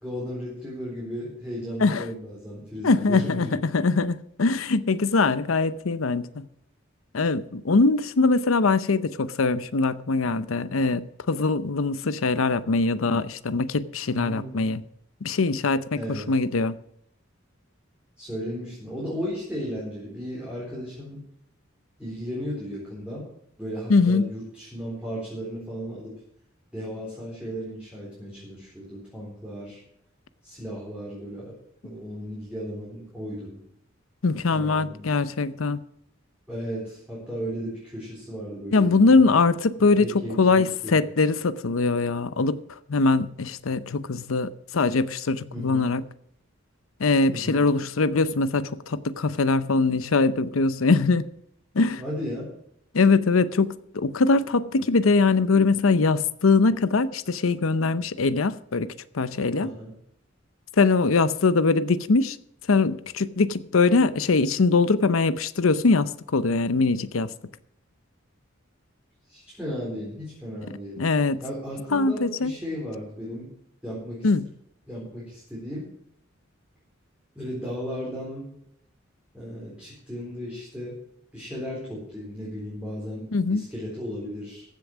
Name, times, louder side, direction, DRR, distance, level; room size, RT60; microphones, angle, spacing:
voice 1, 0.0-3.6 14.1-14.7 15.9-16.3 18.2-21.2 22.0-23.3 23.6-26.2 26.7-29.8 30.4-31.6 31.8-33.6 34.5-35.1 36.5-39.3 39.8-41.0 45.5-45.9 47.3-47.7 52.0-52.5 59.6-59.9 69.3-71.0 71.4-73.5 73.8-74.3 74.9-75.9 77.4-78.5 79.3-81.0 81.3-84.6, equal, 5° right, 4.0 m, -35 dB
voice 2, 2.8-6.5 7.1-14.8 15.2-16.7 23.9-24.3 34.2-35.8 38.7-46.0 47.0-51.3 51.7-52.0 52.9-59.7 60.8-62.4 62.7-67.3 71.0-71.4 71.9-72.5 74.2-74.5 83.3-83.6, left 3 dB, 90° left, 0.7 m, -22 dB
15.0 x 7.1 x 6.1 m
head